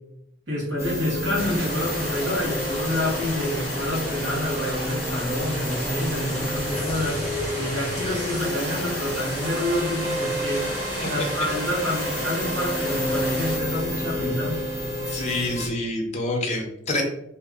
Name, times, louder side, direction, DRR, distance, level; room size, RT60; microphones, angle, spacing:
voice 1, 0.5-7.3 7.6-10.7 11.1-14.6, left 1 dB, 60° right, -5 dB, 1.2 m, -28 dB
sound 1, 0.8-15.7, equal, 15° right, 0.9 m, -31 dB
sound 2, 1.3-13.6, equal, 5° left, 1.2 m, -32 dB
voice 2, 15.1-17.0, left 2 dB, 35° left, 0 dB, 0.6 m, -27 dB
2.6 x 2.3 x 3.5 m, 0.81 s
head